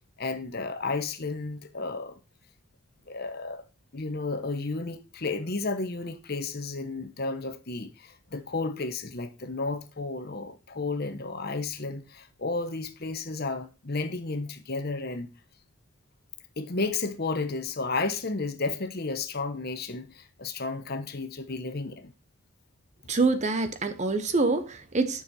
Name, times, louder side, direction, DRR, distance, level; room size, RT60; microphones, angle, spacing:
voice 1, 0.2-2.2 3.1-3.6 3.9-15.3 16.6-22.1, left 3 dB, 45° left, 1.0 m, -32 dB
voice 2, 23.1-25.2, right 3 dB, 30° right, 0.8 m, -26 dB
9.7 x 6.5 x 4.2 m
head